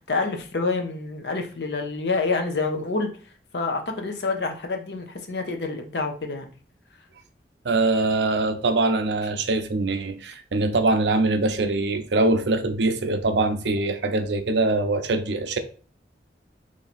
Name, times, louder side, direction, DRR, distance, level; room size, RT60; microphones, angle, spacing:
voice 1, 0.1-3.1 3.5-6.5, left 3 dB, 70° left, 0.7 m, -27 dB
voice 2, 7.6-15.6, right 2 dB, 80° right, 0.6 m, -23 dB
3.1 x 2.8 x 4.2 m
head